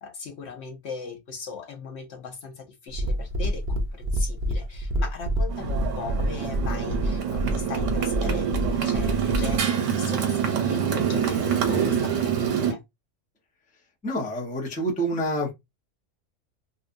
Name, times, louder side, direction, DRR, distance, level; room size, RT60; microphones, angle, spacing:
voice 1, 0.0-12.8, left 5 dB, 65° left, 0.9 m, -38 dB
sound 1, 2.9-9.6, equal, 55° right, 0.6 m, -27 dB
Motorcycle, 5.5-12.7, right 8 dB, 75° right, 1.1 m, -26 dB
voice 2, 14.0-15.6, right 1 dB, 10° left, 0.4 m, -27 dB
2.7 x 2.3 x 2.5 m
omnidirectional pair, 1.3 m